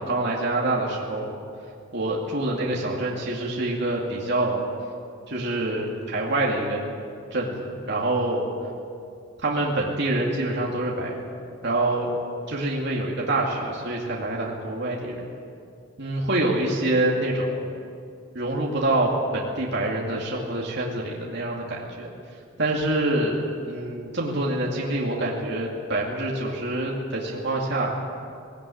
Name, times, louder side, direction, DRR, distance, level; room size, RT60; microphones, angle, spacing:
voice 1, 0.0-1.3 1.9-4.6 5.3-6.8 7.3-8.5 9.4-11.2 11.6-12.1 12.5-15.3 16.0-17.6 18.3-22.1 22.6-28.0, right 2 dB, 55° right, -3 dB, 2.4 m, -26 dB
18.5 x 18.0 x 8.6 m, 2.5 s
head